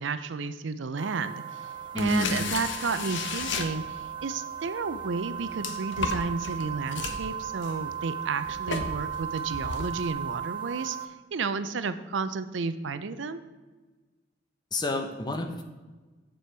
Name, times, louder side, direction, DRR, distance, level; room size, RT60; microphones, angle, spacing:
voice 1, 0.0-1.4 2.0-3.8 4.2-11.0 11.3-13.4, right 4 dB, 75° right, 12 dB, 0.5 m, -32 dB
sound 1, 1.0-11.1, right 9 dB, 25° right, 0.7 m, -36 dB
sound 2, 1.8-4.2 4.9-10.1, left 4 dB, 75° left, 0.9 m, -35 dB
voice 2, 1.9-2.4 14.7-15.6, left 1 dB, 20° left, 5 dB, 0.9 m, -29 dB
7.7 x 7.1 x 4.6 m, 1.3 s
head